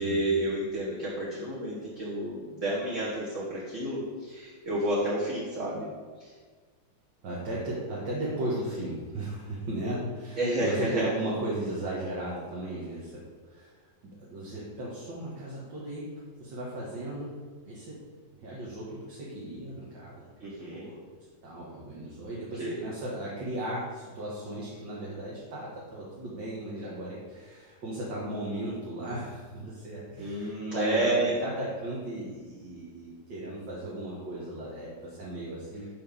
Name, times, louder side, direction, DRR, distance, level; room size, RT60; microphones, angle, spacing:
voice 1, 0.0-5.9 6.2-6.3 10.4-11.1 20.4-20.9 22.6-22.7 30.2-31.4, right 1 dB, 40° right, -7 dB, 1.6 m, -30 dB
voice 2, 7.2-18.0 18.4-20.3 20.6-35.9, right 1 dB, 60° right, -6 dB, 2.1 m, -36 dB
5.6 x 5.5 x 6.8 m, 1.5 s
omnidirectional pair, 2.3 m